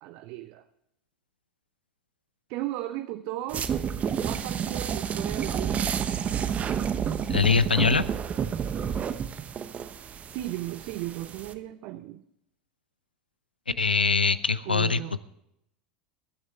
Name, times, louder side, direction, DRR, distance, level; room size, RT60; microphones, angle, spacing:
voice 1, 0.0-0.6 2.5-3.7 4.2-5.9 10.2-12.2 14.7-15.2, right 15 dB, 50° right, 10 dB, 0.7 m, -35 dB
sound 1, 3.5-11.5, right 8 dB, 30° right, 1.1 m, -30 dB
voice 2, 7.3-8.0 13.8-15.2, left 5 dB, 85° left, 16 dB, 0.7 m, -23 dB
22.5 x 9.5 x 3.4 m, 0.80 s
figure-of-eight pair, 80°, 5 cm